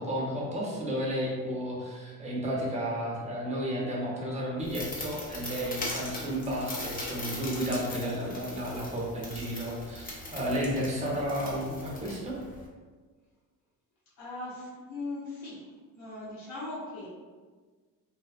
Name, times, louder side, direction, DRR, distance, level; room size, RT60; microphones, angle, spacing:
voice 1, 0.0-12.4, equal, 20° right, -4 dB, 0.6 m, -32 dB
sound 1, 4.6-12.7, left 1 dB, 25° left, 0.5 m, -40 dB
voice 2, 14.2-15.7 16.0-17.1, left 2 dB, 50° left, -9 dB, 0.9 m, -39 dB
2.6 x 2.2 x 2.4 m, 1.4 s
cardioid pair, 110°, 37 cm